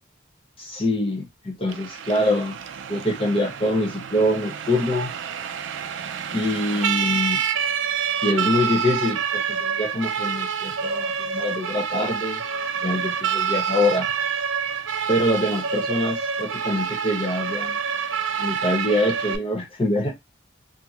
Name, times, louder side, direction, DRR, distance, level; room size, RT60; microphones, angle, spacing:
voice 1, 0.6-2.6 2.9-5.1 6.3-7.4 8.2-12.4 12.8-14.1 15.1-17.8 18.4-20.1, left 1 dB, 30° left, 0.5 m, -24 dB
Siren, 1.7-19.4, right 7 dB, 75° right, 0.4 m, -27 dB
2.9 x 2.6 x 2.3 m
head